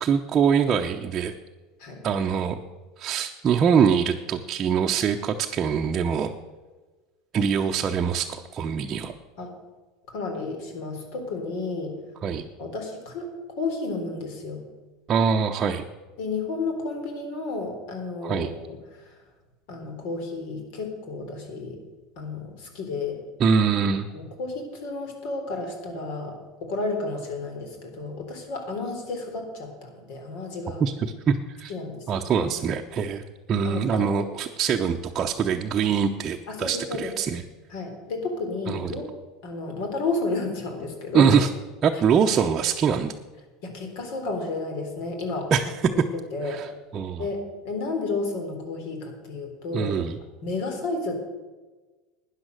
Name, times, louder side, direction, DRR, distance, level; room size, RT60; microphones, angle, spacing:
voice 1, 0.0-1.3 2.0-2.6 3.0-6.3 7.3-9.1 12.2-12.5 15.1-15.8 18.2-18.5 23.4-24.1 30.8-30.9 31.3-31.7 32.1-33.2 33.5-37.4 38.7-38.9 41.1-41.5 41.8-43.1 45.5-45.7 46.5-47.2 49.7-50.2, right 6 dB, 30° right, 2 dB, 0.7 m, -23 dB
voice 2, 10.1-12.0 12.6-13.3 13.6-14.6 16.2-19.2 19.7-21.8 22.2-23.2 24.1-30.8 31.7-32.5 33.6-34.1 36.5-37.1 37.7-39.0 39.4-41.3 43.6-45.5 46.3-46.6 47.2-50.0 50.4-51.2, left 3 dB, 65° left, 4 dB, 3.7 m, -32 dB
12.5 x 9.8 x 6.4 m, 1.3 s
supercardioid pair, 135°, 0 cm